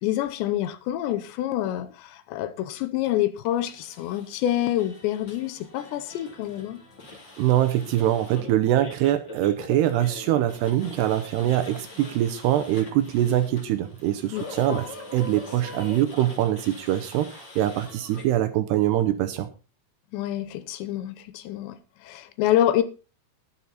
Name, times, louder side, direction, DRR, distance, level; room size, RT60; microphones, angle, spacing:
voice 1, 0.0-6.8 14.3-14.8 20.1-22.8, left 12 dB, 80° left, 2.9 m, -27 dB
sound 1, 3.5-18.2, left 3 dB, 30° left, 2.8 m, -44 dB
voice 2, 7.4-19.5, right 12 dB, 75° right, 2.6 m, -23 dB
11.5 x 11.0 x 4.1 m
omnidirectional pair, 5.4 m